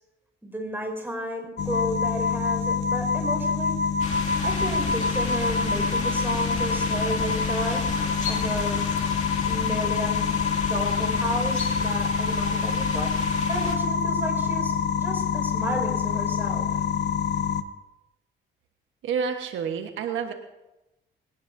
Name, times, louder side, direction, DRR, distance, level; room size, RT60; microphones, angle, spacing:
voice 1, 0.4-3.7 4.4-7.8 8.3-8.8 9.4-10.3 10.6-13.1 13.5-16.7, right 1 dB, 10° right, 2 dB, 5.3 m, -33 dB
sound 1, 1.6-17.6, left 5 dB, 60° left, 0.8 m, -26 dB
sound 2, 4.0-13.8, left 3 dB, 35° left, 2.5 m, -33 dB
voice 2, 19.0-20.3, right 6 dB, 80° right, 5 dB, 1.3 m, -29 dB
21.0 x 18.0 x 2.7 m, 0.97 s
cardioid pair, 90°, 20 cm